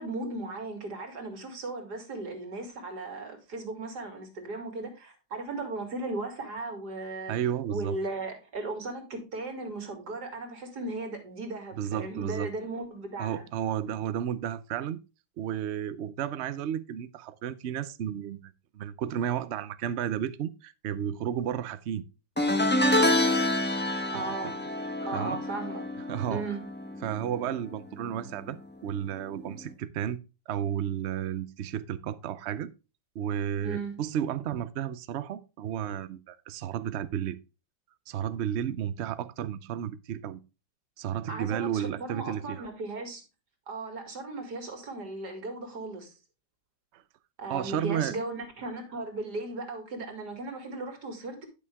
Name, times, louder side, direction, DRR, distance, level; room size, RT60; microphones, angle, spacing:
voice 1, 0.0-7.3 7.7-13.4 24.1-24.6 25.0-25.9 26.3-26.6 33.6-34.0 41.3-43.2 43.7-46.1 47.4-51.5, right 2 dB, 60° right, 3.1 m, -36 dB
voice 2, 7.3-8.0 11.8-12.5 13.2-15.0 15.4-22.0 24.1-24.3 25.1-25.4 26.1-26.4 27.0-28.6 28.8-30.2 30.5-32.7 33.1-37.4 38.1-40.4 41.0-42.7 46.9-47.0 47.5-48.1, right 10 dB, 85° right, 0.6 m, -32 dB
sound 1, 22.4-27.8 28.0-28.4 29.6-29.7, left 1 dB, 5° left, 0.9 m, -27 dB
11.0 x 6.5 x 3.5 m
omnidirectional pair, 2.0 m